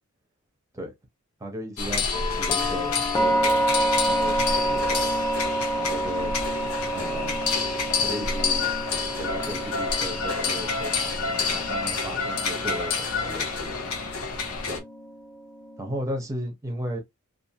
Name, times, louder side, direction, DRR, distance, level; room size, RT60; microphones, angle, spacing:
voice 1, 1.4-3.6 4.0-4.8 5.7-6.3 6.9-7.4 8.0-8.7 9.2-13.8 14.7-14.8 15.8-17.0, right 1 dB, 15° right, 0.8 m, -35 dB
sound 1, 1.8-14.8, left 4 dB, 85° left, 0.7 m, -28 dB
sound 2, 2.1-16.0, right 1 dB, 20° left, 0.5 m, -29 dB
2.6 x 2.5 x 2.7 m
head